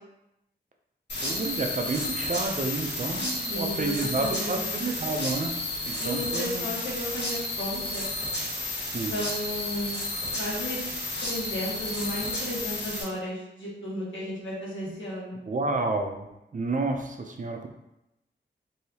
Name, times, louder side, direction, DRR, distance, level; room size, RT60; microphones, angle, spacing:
sound 1, 1.1-13.0, left 2 dB, 60° left, 1.1 m, -32 dB
voice 1, 1.2-5.5 5.9-6.6 8.8-9.1 15.5-16.3 16.5-17.7, right 3 dB, 40° right, 3 dB, 0.4 m, -30 dB
voice 2, 3.5-4.8 6.0-8.1 9.0-10.0 10.4-10.8 11.2-15.4, left 1 dB, 80° left, -6 dB, 1.2 m, -34 dB
3.2 x 2.7 x 2.8 m, 0.90 s
wide cardioid pair, 65°, 19 cm